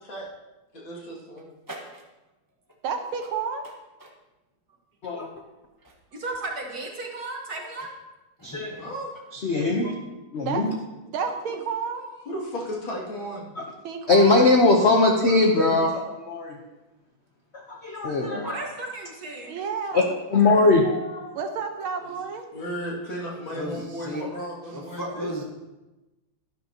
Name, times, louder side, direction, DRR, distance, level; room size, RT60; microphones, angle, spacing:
voice 1, 0.8-1.5 8.8-9.1 12.3-13.5 22.0-22.1 22.5-25.3, equal, 65° left, -4 dB, 3.2 m, -34 dB
voice 2, 1.7-2.0 4.0-4.1 8.4-8.9 23.5-24.2 24.7-25.4, equal, 15° left, -2 dB, 0.8 m, -35 dB
voice 3, 2.8-3.6 10.4-10.6 11.1-12.1 13.8-14.5 19.5-20.2 21.3-22.4, right 6 dB, 75° right, 5 dB, 1.8 m, -30 dB
voice 4, 6.1-7.9 18.4-19.5, right 2 dB, 50° right, 0 dB, 1.7 m, -34 dB
voice 5, 9.3-9.9 10.3-10.7 13.6-13.7 14.1-16.6 17.7-18.5 19.9-20.0 20.3-21.3, left 3 dB, 50° left, 1 dB, 0.8 m, -20 dB
11.5 x 11.5 x 2.9 m, 1.0 s
omnidirectional pair, 2.3 m